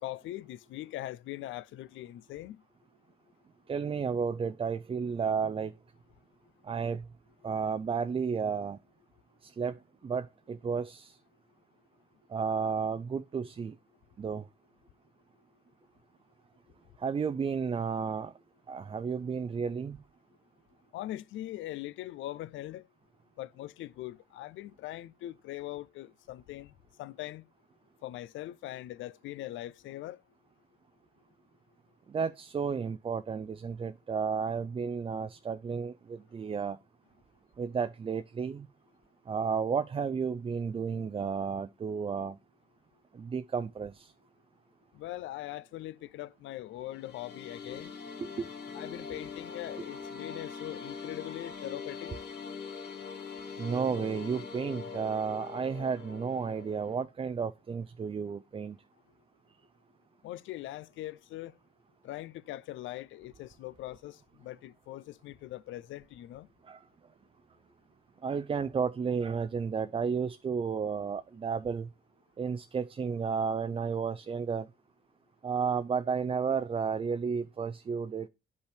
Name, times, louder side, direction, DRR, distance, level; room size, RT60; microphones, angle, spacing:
voice 1, 0.0-2.6 20.9-22.8 23.4-26.7 27.0-27.4 28.0-30.2 44.9-47.9 48.7-52.1 60.2-61.6 62.0-66.5, left 15 dB, 75° left, 0.4 m, -41 dB
voice 2, 3.7-5.7 6.6-7.1 7.4-8.8 9.4-11.2 12.3-13.8 14.2-14.5 17.0-18.3 18.7-20.0 32.1-36.8 37.6-38.7 39.3-42.4 43.1-44.1 48.2-48.5 53.6-58.8 66.7-66.8 68.2-71.9 72.4-74.7 75.4-78.3, right 6 dB, 25° right, 0.4 m, -32 dB
sound 1, 46.8-57.0, left 5 dB, 55° left, 1.6 m, -43 dB
10.5 x 5.3 x 3.3 m
cardioid pair, 90°, 20 cm